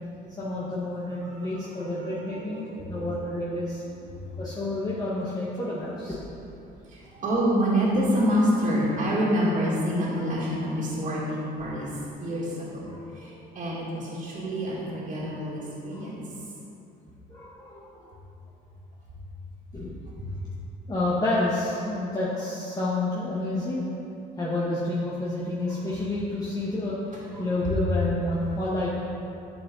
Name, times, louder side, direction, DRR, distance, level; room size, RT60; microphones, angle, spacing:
voice 1, 0.4-3.8 4.4-6.2 12.9-13.4 15.9-16.0 17.3-17.9 19.7-19.9 20.9-23.8 24.4-27.0 27.3-28.9, left 2 dB, 20° left, -8 dB, 1.6 m, -29 dB
voice 2, 0.9-3.2 4.1-4.7 5.9-6.0 6.8-12.8 13.1-16.4 20.2-20.4 27.1-27.8 28.5-28.6, equal, 50° right, -8 dB, 2.5 m, -28 dB
10.5 x 7.9 x 4.1 m, 2.7 s
cardioid pair, 110°, 17 cm